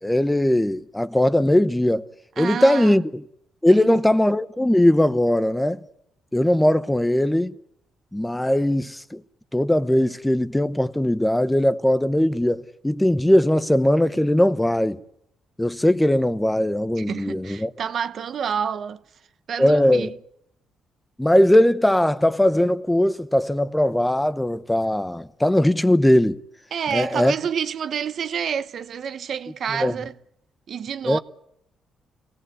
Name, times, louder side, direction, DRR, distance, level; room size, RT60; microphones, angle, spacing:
voice 1, 0.0-2.1 2.4-3.0 3.6-5.8 6.3-7.6 8.1-9.2 9.5-15.0 15.6-17.7 19.6-20.1 21.2-26.4 26.9-27.3 29.7-29.9 31.1-31.2, left 1 dB, 10° left, 0.9 m, -19 dB
voice 2, 2.4-3.0 3.7-4.0 17.0-19.0 19.5-20.1 26.7-30.1 30.7-31.2, right 7 dB, 60° right, 0.9 m, -28 dB
24.0 x 17.0 x 8.4 m
cardioid pair, 90°, 0 cm